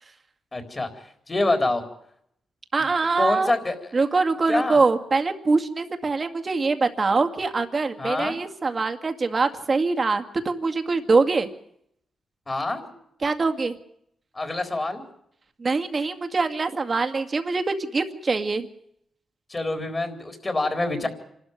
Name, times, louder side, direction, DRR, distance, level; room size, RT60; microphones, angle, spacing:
voice 1, 0.5-1.8 2.8-2.9 3.2-3.9 4.5-4.8 8.0-8.4 12.5-12.9 14.3-15.0 19.5-21.1, left 2 dB, 25° left, 6 dB, 4.0 m, -26 dB
voice 2, 2.7-3.5 3.9-11.5 13.2-13.8 15.6-18.7, right 4 dB, 35° right, 7 dB, 2.1 m, -23 dB
27.0 x 13.0 x 9.6 m, 0.73 s
cardioid pair, 90°, 0 cm